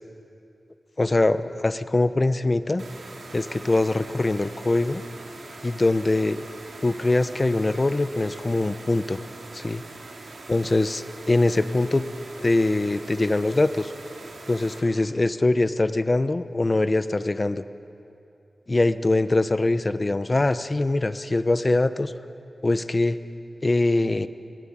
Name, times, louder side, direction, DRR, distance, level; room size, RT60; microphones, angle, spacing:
voice 1, 1.0-2.8 3.3-5.0 5.6-6.5 6.8-9.2 9.5-9.8 10.5-12.0 12.4-13.9 14.5-17.6 18.7-22.1 22.6-23.2 23.6-24.3, left 2 dB, 30° left, 12 dB, 0.8 m, -23 dB
sound 1, 2.8-14.8, right 3 dB, 85° right, 3.5 m, -42 dB
22.5 x 18.5 x 8.8 m, 2.7 s
wide cardioid pair, 115°, 0 cm